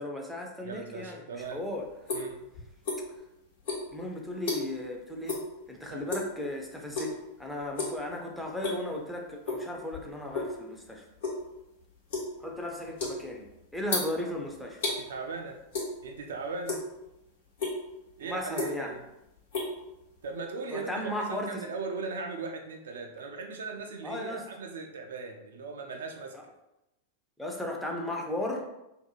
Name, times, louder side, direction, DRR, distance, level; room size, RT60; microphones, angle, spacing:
voice 1, 0.0-2.2 3.9-5.4 5.7-11.0 12.4-14.8 18.2-19.0 20.7-21.6 24.0-24.4 27.4-28.7, left 1 dB, ahead, 0 dB, 0.5 m, -36 dB
voice 2, 0.6-1.6 2.1-2.5 5.9-6.1 14.8-15.6 16.0-16.8 18.2-19.0 20.2-26.4, right 4 dB, 65° right, 3 dB, 0.3 m, -38 dB
sound 1, 1.4-3.3 3.6-4.9 5.2-5.5 5.8-6.4 6.9-7.3 7.6-8.0 8.4-9.0 9.4-10.6 10.9-15.0 15.7-16.3 16.5-17.2 17.6-17.8 18.3-19.0 19.3-20.4, left 3 dB, 65° left, 1.1 m, -34 dB
2.6 x 2.2 x 2.8 m, 0.91 s
figure-of-eight pair, 90°, 0 cm